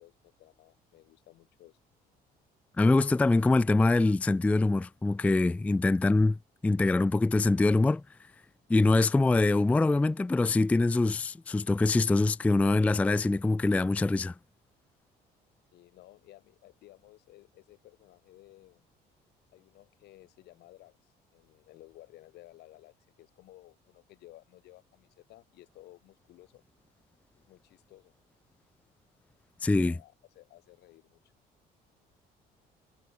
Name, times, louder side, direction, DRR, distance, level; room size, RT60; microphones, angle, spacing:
voice 1, 0.0-1.8 15.7-18.9 19.5-26.6 27.4-28.1 29.8-31.2, left 16 dB, 80° left, 5.1 m, -56 dB
voice 2, 2.8-6.4 6.6-8.0 8.7-14.3 29.6-30.0, left 2 dB, 10° left, 0.3 m, -24 dB
cardioid pair, 110°, 17 cm